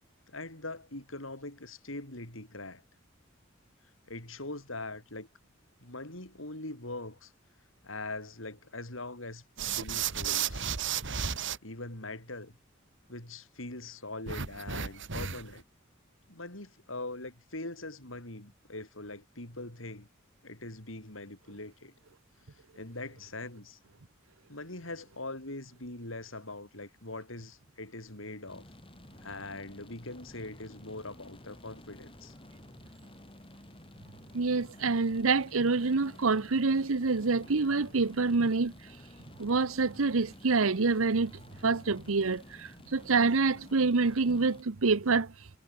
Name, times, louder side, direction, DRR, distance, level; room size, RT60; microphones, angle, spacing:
voice 1, 0.3-2.8 4.1-5.3 5.8-7.3 7.8-9.4 9.7-10.7 11.6-12.5 13.1-15.6 16.3-20.1 20.4-21.9 22.8-23.8 24.5-28.7 29.2-32.3, left 2 dB, 70° left, 5.8 m, -42 dB
sound 1, 9.6-11.6 14.3-15.6, right 8 dB, 65° right, 1.9 m, -33 dB
sound 2, 28.5-44.6, left 1 dB, 25° left, 6.4 m, -52 dB
voice 2, 34.3-38.7 39.4-41.3 41.6-45.3, right 4 dB, 90° right, 0.9 m, -26 dB
head